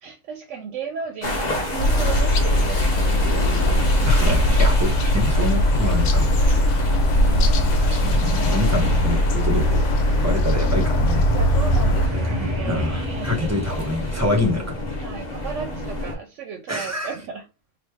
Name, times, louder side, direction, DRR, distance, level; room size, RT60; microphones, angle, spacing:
voice 1, 0.0-3.7 6.4-7.9 11.3-13.5 14.1-14.4 15.0-17.4, right 6 dB, 75° right, 0.9 m, -35 dB
sound 1, 1.2-16.2, left 1 dB, 40° left, 0.7 m, -29 dB
sound 2, 1.8-12.1, left 1 dB, 70° left, 0.9 m, -20 dB
voice 2, 4.1-6.3 7.8-9.8 10.2-11.2 12.6-15.0 16.7-17.1, left 2 dB, 15° right, 0.6 m, -26 dB
sound 3, 9.9-14.9, equal, 50° right, 0.3 m, -29 dB
3.1 x 2.3 x 3.3 m
omnidirectional pair, 1.3 m